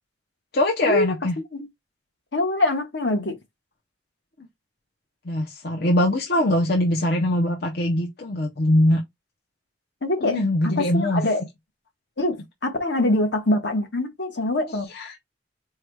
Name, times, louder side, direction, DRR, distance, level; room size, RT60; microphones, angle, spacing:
voice 1, 0.5-1.4 5.2-9.0 10.2-11.2 14.9-15.2, left 1 dB, 55° left, 0.7 m, -22 dB
voice 2, 2.3-3.4 10.0-10.4 10.6-11.4 12.2-14.9, left 2 dB, 75° left, 1.5 m, -24 dB
4.7 x 2.3 x 4.6 m
head